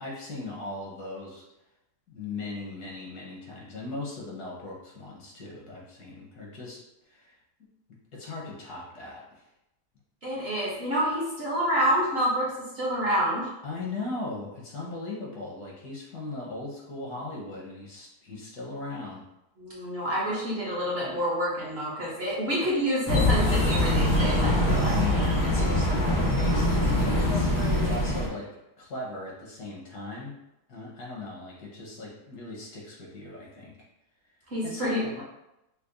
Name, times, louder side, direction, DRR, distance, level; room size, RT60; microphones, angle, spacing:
voice 1, 0.0-1.4 2.1-6.8 7.1-7.4 8.1-9.4 13.6-19.2 24.6-28.5 28.8-30.3 30.7-33.8 34.6-35.2, left 2 dB, 75° left, -3 dB, 1.5 m, -38 dB
voice 2, 10.2-13.5 19.6-25.0 34.5-35.0, equal, 50° right, -6 dB, 0.9 m, -28 dB
sound 1, 23.1-28.3, left 1 dB, 30° left, 0.3 m, -23 dB
5.7 x 2.1 x 2.5 m, 0.90 s
omnidirectional pair, 1.7 m